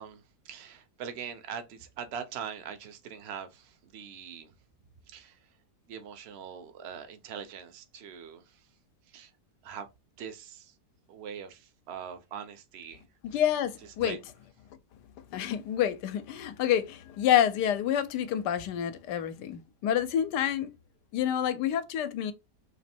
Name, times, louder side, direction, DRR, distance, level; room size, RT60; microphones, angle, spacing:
voice 1, 0.0-4.5 5.1-5.5 5.9-8.7 9.1-9.3 9.6-9.9 10.2-10.7 11.1-13.0 13.3-13.4 13.8-14.2, right 7 dB, 55° right, 0.7 m, -42 dB
voice 2, 13.2-14.2 15.3-20.7 21.1-22.3, left 10 dB, 90° left, 1.2 m, -28 dB
3.3 x 2.9 x 4.3 m
omnidirectional pair, 1.8 m